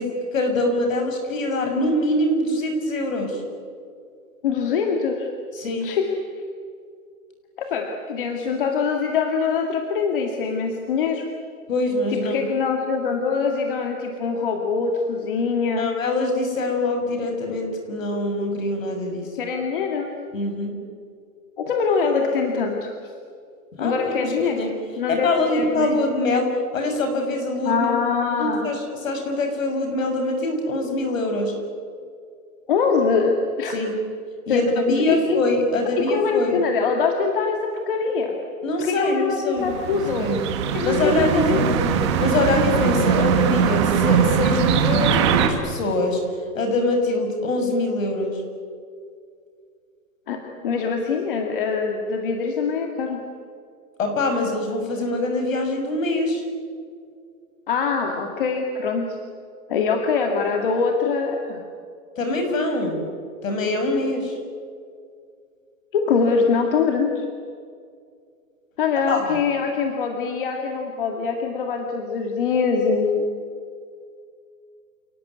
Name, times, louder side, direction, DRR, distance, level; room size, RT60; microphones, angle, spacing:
voice 1, 0.0-3.4 5.5-5.9 11.7-12.5 15.8-19.3 20.3-20.7 23.7-24.7 25.1-27.9 28.4-31.5 33.7-34.0 34.5-36.6 38.6-40.4 40.8-41.7 42.2-46.2 46.5-48.4 54.0-56.4 62.2-63.1 63.4-64.4 69.1-69.4, left 2 dB, 55° left, 5 dB, 6.9 m, -24 dB
voice 2, 4.4-5.3 5.8-6.1 7.6-11.3 12.1-15.9 19.4-20.1 21.6-22.9 23.8-24.6 25.0-26.0 27.7-28.7 32.7-33.8 34.5-35.4 36.0-38.3 38.8-40.3 40.7-42.0 50.3-53.2 57.7-59.2 59.7-61.6 65.9-67.2 68.8-73.3, left 5 dB, 35° left, 3 dB, 2.1 m, -23 dB
sound 1, 39.6-45.5, right 8 dB, 20° right, 1.4 m, -21 dB
29.0 x 19.0 x 9.6 m, 2.2 s
hypercardioid pair, 180°, 46 cm